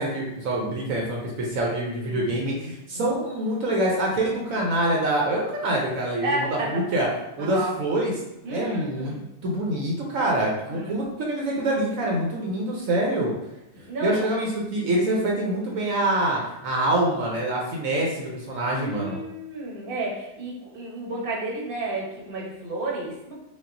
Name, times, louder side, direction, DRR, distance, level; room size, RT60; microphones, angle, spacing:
voice 1, 0.0-7.1 7.4-8.1 8.5-9.1 9.4-13.3 14.0-19.2, right 1 dB, 70° right, -2 dB, 1.1 m, -25 dB
voice 2, 2.0-3.1 6.2-6.7 7.4-7.7 8.4-9.2 10.6-11.0 12.8-13.0 13.9-14.3 18.7-23.3, right 2 dB, 45° right, -3 dB, 1.0 m, -32 dB
5.2 x 2.5 x 2.6 m, 0.94 s
omnidirectional pair, 1.5 m